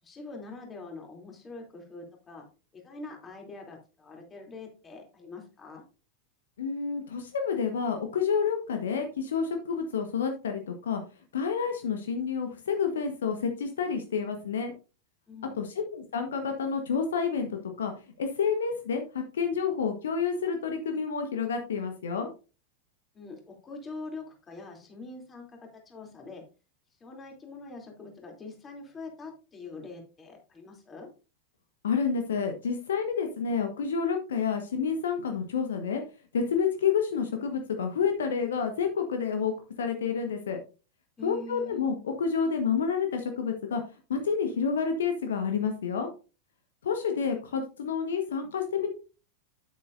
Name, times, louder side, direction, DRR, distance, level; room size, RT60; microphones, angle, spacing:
voice 1, 0.0-2.4 2.7-5.8 15.3-15.7 23.1-26.4 27.0-31.1 41.2-41.8, left 3 dB, 20° left, 1 dB, 3.0 m, -44 dB
voice 2, 6.6-11.0 11.3-14.7 15.5-17.9 18.2-22.3 31.8-36.0 36.3-40.6 41.2-43.8 44.1-46.1 46.8-48.9, left 6 dB, 65° left, 5 dB, 1.3 m, -29 dB
9.7 x 8.4 x 2.6 m, 0.33 s
figure-of-eight pair, 90°, 0 cm